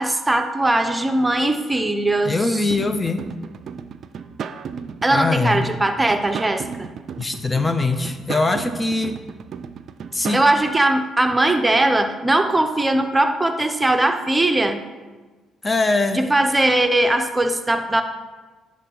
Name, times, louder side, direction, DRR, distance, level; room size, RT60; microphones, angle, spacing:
voice 1, 0.0-2.7 5.0-6.9 10.3-14.8 16.1-18.0, right 1 dB, 15° right, 7 dB, 0.8 m, -20 dB
voice 2, 2.2-3.3 5.1-5.7 7.2-9.1 10.1-10.4 15.6-16.2, left 3 dB, 25° left, 8 dB, 0.6 m, -22 dB
sound 1, 2.7-10.5, right 6 dB, 60° right, 0.4 m, -34 dB
9.7 x 3.8 x 5.5 m, 1.3 s
supercardioid pair, 60°, 0 cm